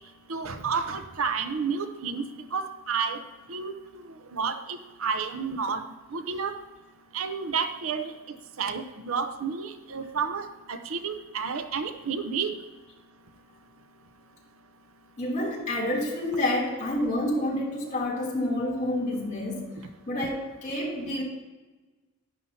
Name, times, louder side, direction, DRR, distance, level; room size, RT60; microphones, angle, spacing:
voice 1, 0.3-3.2 3.5-4.1 4.3-5.8 6.1-6.5 7.1-12.6, right 5 dB, 70° right, 9 dB, 0.7 m, -31 dB
voice 2, 15.2-19.8 20.1-21.2, left 1 dB, 35° left, -4 dB, 3.0 m, -28 dB
11.5 x 10.5 x 2.8 m, 1.2 s
head